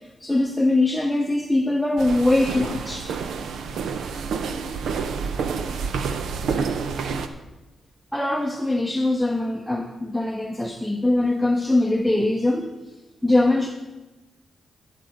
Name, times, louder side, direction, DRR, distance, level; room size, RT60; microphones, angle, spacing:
voice 1, 0.2-3.1 8.1-12.7 13.2-13.7, left 2 dB, 5° left, 2 dB, 0.7 m, -22 dB
sound 1, 2.0-7.3, right 5 dB, 85° right, 0.7 m, -28 dB
12.0 x 6.8 x 5.0 m, 1.1 s
cardioid pair, 110°, 0 cm